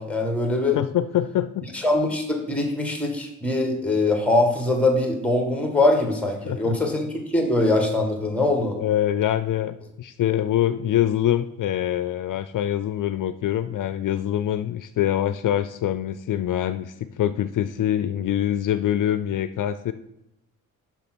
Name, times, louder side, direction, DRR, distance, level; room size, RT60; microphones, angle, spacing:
voice 1, 0.0-0.8 1.7-8.8, left 2 dB, 5° left, 4 dB, 1.8 m, -22 dB
voice 2, 0.7-1.6 6.5-6.8 8.8-19.9, left 11 dB, 65° left, 12 dB, 0.5 m, -24 dB
7.0 x 5.8 x 6.1 m, 0.85 s
cardioid pair, 100°, 34 cm